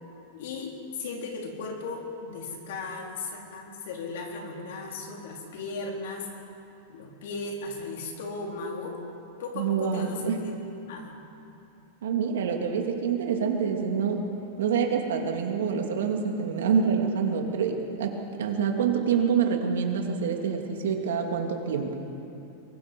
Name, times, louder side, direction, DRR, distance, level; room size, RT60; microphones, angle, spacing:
voice 1, 0.3-6.3 6.9-9.0 9.4-10.5 10.9-11.1, left 3 dB, 65° left, 0 dB, 4.1 m, -36 dB
voice 2, 9.6-10.5 12.0-14.2 14.6-21.9, right 6 dB, 85° right, 2 dB, 2.6 m, -26 dB
23.0 x 23.0 x 5.4 m, 2.7 s
supercardioid pair, 160°, 0 cm